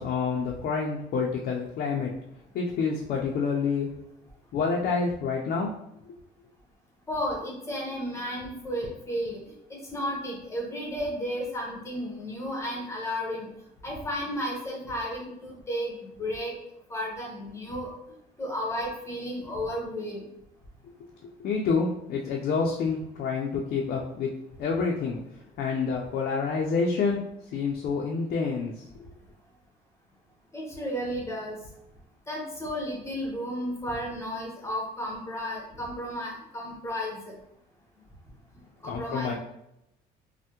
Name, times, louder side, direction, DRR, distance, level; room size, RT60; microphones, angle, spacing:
voice 1, 0.0-2.1 2.5-3.9 4.5-5.7 21.2-24.3 24.6-25.2 25.6-27.2 27.5-28.8 38.8-39.3, left 5 dB, 60° left, -1 dB, 0.5 m, -28 dB
voice 2, 7.1-9.4 9.7-13.5 13.8-16.6 16.9-17.9 18.4-20.2 30.5-31.6 32.3-37.3 38.8-39.3, equal, 15° left, -2 dB, 0.9 m, -33 dB
3.3 x 2.1 x 2.8 m, 0.82 s
cardioid pair, 110°, 17 cm